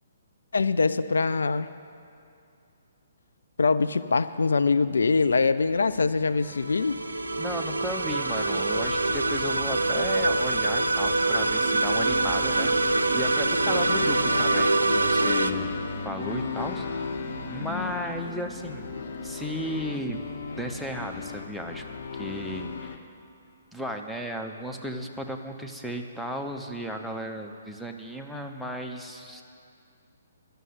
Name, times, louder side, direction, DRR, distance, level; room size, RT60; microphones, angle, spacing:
voice 1, 0.5-1.7 3.6-7.0, left 4 dB, 70° left, 13 dB, 0.4 m, -23 dB
sound 1, 5.7-22.9, left 1 dB, 40° left, 1.9 m, -41 dB
sound 2, 6.4-23.0, left 5 dB, 55° left, 0.8 m, -37 dB
sound 3, 6.4-15.5, right 2 dB, 85° right, 0.5 m, -25 dB
voice 2, 7.4-15.7 16.0-17.1 17.5-18.9 19.2-20.2 20.6-21.8 22.1-23.0 23.7-29.4, equal, ahead, 2 dB, 0.8 m, -35 dB
11.0 x 6.8 x 9.3 m, 2.5 s
figure-of-eight pair, 130°, 0 cm